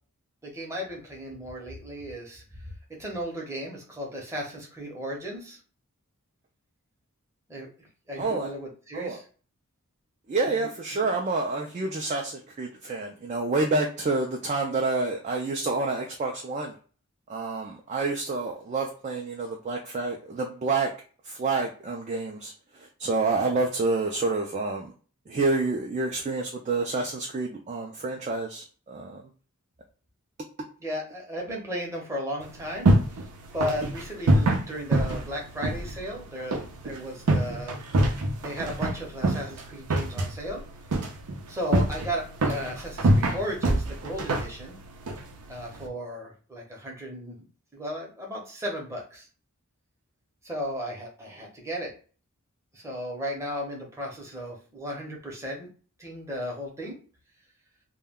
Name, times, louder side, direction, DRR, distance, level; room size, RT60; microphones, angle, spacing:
voice 1, 0.4-2.6 3.0-5.6 7.5-7.7 8.1-9.2 30.8-32.9 33.5-37.8 38.4-40.6 41.5-44.8 45.5-47.5 47.7-49.3 50.4-51.9 52.7-55.7 56.0-57.0, equal, 10° right, -2 dB, 0.7 m, -35 dB
voice 2, 8.2-8.5 8.9-9.2 10.3-16.7 17.3-20.9 21.2-24.9 25.3-29.2, right 3 dB, 30° right, 1 dB, 0.3 m, -28 dB
sound 1, 32.4-45.9, right 1 dB, 80° right, 0.6 m, -27 dB
2.2 x 2.1 x 3.4 m, 0.39 s
head